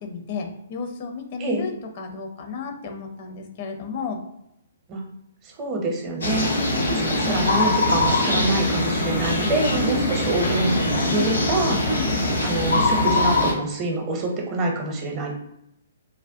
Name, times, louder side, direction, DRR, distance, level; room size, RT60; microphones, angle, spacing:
voice 1, 0.0-4.2 6.5-7.0 9.8-10.2 11.8-12.1, left 3 dB, 45° left, 4 dB, 0.5 m, -32 dB
voice 2, 5.4-6.5 6.9-10.7 11.1-11.8 12.4-15.3, right 2 dB, 30° right, 1 dB, 0.7 m, -26 dB
sound 1, 6.2-13.5, left 2 dB, 85° left, 1.1 m, -22 dB
3.3 x 2.1 x 2.6 m, 0.80 s
figure-of-eight pair, 125°, 0 cm